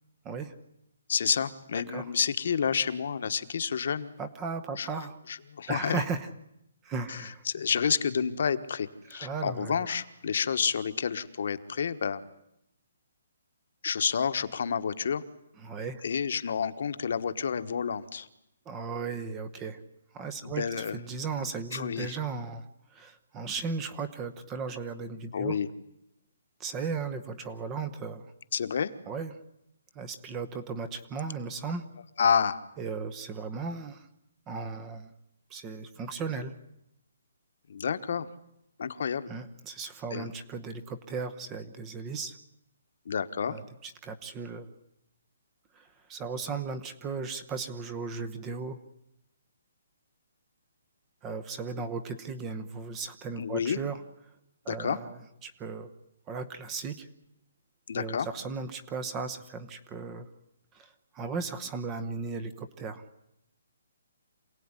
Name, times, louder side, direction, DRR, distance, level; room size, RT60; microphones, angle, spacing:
voice 1, 1.1-4.1 4.8-4.9 5.3-6.0 7.1-12.2 13.8-15.2 16.0-18.3 20.4-21.0 21.7-22.1 25.3-25.7 28.5-28.9 32.2-32.6 37.7-38.3 38.8-39.3 40.1-40.3 43.0-43.6 53.4-53.8 54.7-55.0 57.9-58.3, left 7 dB, 45° left, 11 dB, 1.3 m, -29 dB
voice 2, 1.7-2.1 4.2-5.2 5.7-6.3 6.8-7.4 9.1-9.9 15.6-16.0 18.7-19.8 20.1-25.6 26.6-28.3 29.1-29.3 29.9-31.8 32.8-34.1 34.5-35.1 35.5-36.5 39.3-42.4 43.5-44.8 45.7-48.8 51.2-54.0 54.6-55.9 56.3-57.1 57.9-60.3 60.7-63.0, right 4 dB, 10° right, 10 dB, 0.9 m, -36 dB
27.0 x 17.5 x 9.8 m, 0.82 s
hypercardioid pair, 180°, 0 cm